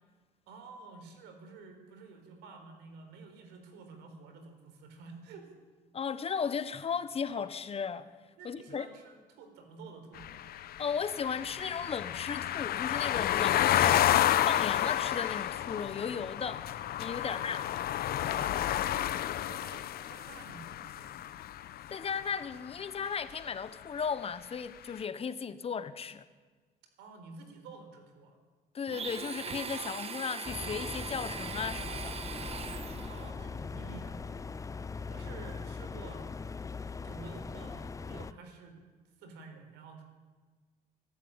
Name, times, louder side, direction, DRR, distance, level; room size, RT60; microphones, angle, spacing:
voice 1, 0.5-5.5 8.4-10.4 17.2-17.7 18.1-21.2 27.0-28.4 33.1-34.7 35.0-36.3 37.0-38.8 39.2-40.0, right 4 dB, 90° right, 4.4 m, -50 dB
voice 2, 5.9-8.1 8.4-8.9 10.8-16.6 17.0-17.6 21.9-26.2 28.7-32.2, left 6 dB, 35° left, 1.2 m, -35 dB
sound 1, 10.2-22.2, left 12 dB, 65° left, 0.9 m, -30 dB
Domestic sounds home sounds, 28.9-33.3, right 6 dB, 35° right, 1.3 m, -40 dB
sound 2, 30.4-38.3, left 4 dB, 20° left, 0.6 m, -40 dB
24.5 x 12.0 x 8.9 m
cardioid pair, 110°, 17 cm